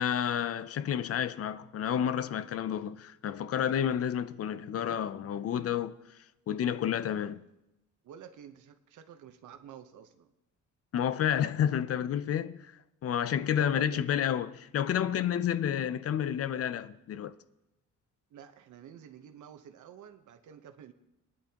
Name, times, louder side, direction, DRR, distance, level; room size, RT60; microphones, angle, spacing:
voice 1, 0.0-6.2 6.5-7.4 10.9-12.7 13.0-17.4, left 9 dB, 50° left, 0.5 m, -30 dB
voice 2, 8.0-10.3 13.6-14.0 18.3-20.9, right 8 dB, 70° right, 1.0 m, -49 dB
23.0 x 10.5 x 2.9 m
cardioid pair, 160°, 31 cm